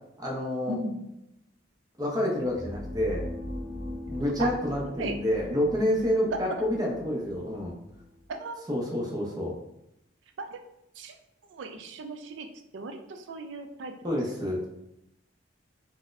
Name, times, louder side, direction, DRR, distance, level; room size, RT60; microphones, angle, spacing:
voice 1, 0.2-0.8 2.0-3.2 4.1-7.7 8.7-9.5 14.0-14.7, left 1 dB, 20° right, -2 dB, 0.6 m, -28 dB
sound 1, 2.4-8.3, left 1 dB, 60° right, 0.8 m, -40 dB
voice 2, 6.3-6.7 8.3-8.6 10.4-10.6 11.0-11.1 11.5-12.5 12.7-13.9, right 3 dB, 85° right, 6 dB, 0.4 m, -36 dB
4.0 x 2.1 x 2.5 m, 0.83 s
head